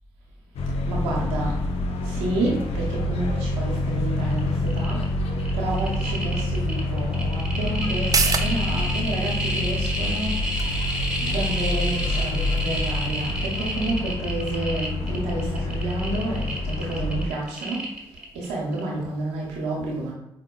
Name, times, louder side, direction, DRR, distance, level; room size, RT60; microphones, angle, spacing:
sound 1, 0.6-17.3, left 2 dB, 65° left, 0.4 m, -27 dB
voice 1, 0.9-1.7 2.0-20.1, right 2 dB, 90° right, -3 dB, 0.7 m, -30 dB
sound 2, 4.4-4.5 4.7-5.0 5.4-18.4 18.7-18.8, right 1 dB, 10° right, 1.1 m, -30 dB
sound 3, 7.9-15.1 15.4-15.5, right 4 dB, 35° right, 0.3 m, -33 dB
4.7 x 2.1 x 2.2 m, 0.83 s
hypercardioid pair, 40°, 11 cm